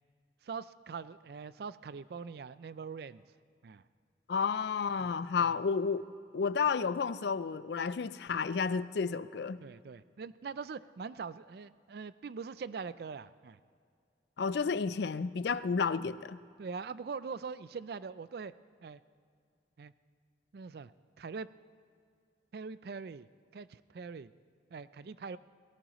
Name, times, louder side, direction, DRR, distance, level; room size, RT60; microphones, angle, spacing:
voice 1, 0.4-3.2 3.6-3.8 5.0-5.1 5.4-5.6 9.6-13.6 16.6-18.5 18.8-19.0 19.8-19.9 20.5-20.9 21.2-21.5 22.5-24.3 24.7-25.4, right 5 dB, 60° right, 0.4 m, -43 dB
voice 2, 4.3-6.0 6.3-9.6 14.4-16.4, left 5 dB, 65° left, 0.4 m, -31 dB
18.0 x 17.0 x 3.0 m
head